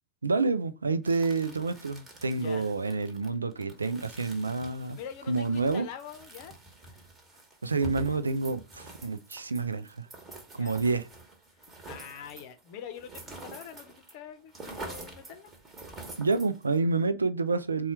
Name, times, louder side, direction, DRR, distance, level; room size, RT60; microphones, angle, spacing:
voice 1, 0.2-5.0 5.3-5.9 7.6-10.1 10.5-11.1 16.2-17.9, right 3 dB, 75° right, 0.4 m, -28 dB
sound 1, 1.0-14.1 14.4-16.8, right 2 dB, 20° right, 1.2 m, -47 dB
voice 2, 2.3-2.7 5.0-7.0 10.6-10.8 11.5-15.5, left 8 dB, 45° left, 0.7 m, -45 dB
4.1 x 2.3 x 4.3 m
figure-of-eight pair, 90°, 0 cm